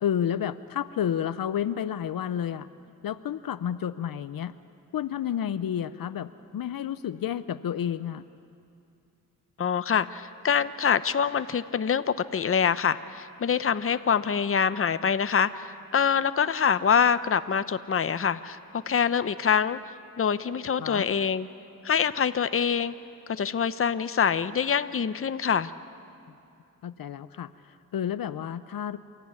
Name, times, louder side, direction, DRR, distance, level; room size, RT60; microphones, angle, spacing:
voice 1, 0.0-2.7 3.0-4.6 4.9-8.2 20.8-21.0 26.8-29.0, left 9 dB, 75° left, 14 dB, 0.7 m, -30 dB
voice 2, 9.6-18.6 18.9-19.8 20.2-21.5 21.8-22.9 23.3-25.7, left 7 dB, 40° left, 13 dB, 0.7 m, -25 dB
28.0 x 14.5 x 9.6 m, 2.5 s
cardioid pair, 75°, 35 cm